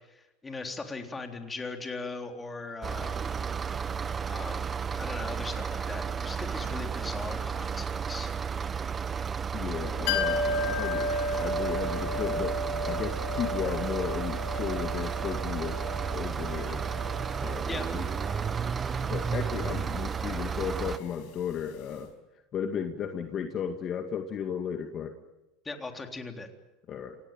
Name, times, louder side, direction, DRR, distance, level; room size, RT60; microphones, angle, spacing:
voice 1, 0.1-3.1 4.3-4.6 4.9-8.3 17.6-17.9 25.6-26.5, left 3 dB, 15° left, 4 dB, 3.7 m, -39 dB
sound 1, 2.8-21.0, right 6 dB, 25° right, 1.0 m, -33 dB
voice 2, 9.5-15.8 16.1-16.8 17.4-18.1 19.1-22.1 22.5-25.1 26.9-27.2, left 7 dB, 40° left, 5 dB, 2.2 m, -34 dB
sound 2, 10.1-21.7 21.9-22.0, left 1 dB, 65° left, 5.5 m, -35 dB
27.5 x 17.5 x 9.1 m, 1.0 s
supercardioid pair, 105°, 0 cm